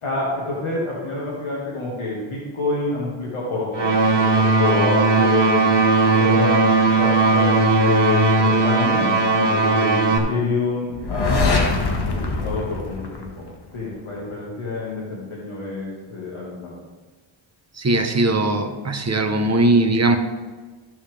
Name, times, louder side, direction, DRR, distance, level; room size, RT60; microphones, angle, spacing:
voice 1, 0.0-5.6 6.0-11.7 12.0-13.5 13.7-16.7, left 3 dB, 90° left, -5 dB, 2.1 m, -27 dB
sound 1, 3.7-10.2, right 3 dB, 60° right, 1.7 m, -17 dB
sound 2, 10.9-13.8, left 3 dB, 55° left, 1.7 m, -23 dB
voice 2, 17.7-20.2, right 2 dB, 30° right, 6 dB, 1.1 m, -19 dB
14.0 x 7.2 x 3.5 m, 1.4 s
cardioid pair, 70°, 48 cm